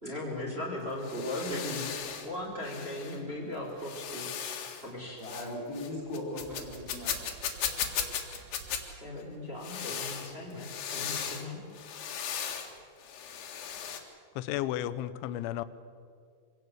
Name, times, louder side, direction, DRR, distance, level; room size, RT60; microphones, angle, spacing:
voice 1, 0.0-1.8 2.2-4.2 4.8-5.2 9.0-11.7, left 1 dB, 15° right, -3 dB, 3.9 m, -37 dB
sound 1, 0.8-2.3 2.6-3.2 3.8-4.9 5.2-5.5 5.7-8.8 9.6-11.5 11.7-12.7 13.0-14.0, left 8 dB, 60° left, 3.5 m, -36 dB
voice 2, 4.9-7.2, left 1 dB, 25° left, -2 dB, 4.0 m, -39 dB
sound 2, 6.4-9.6, right 7 dB, 65° right, 2.7 m, -53 dB
voice 3, 14.4-15.6, left 13 dB, 80° left, 13 dB, 3.1 m, -33 dB
25.0 x 17.0 x 8.2 m, 2.2 s
omnidirectional pair, 5.5 m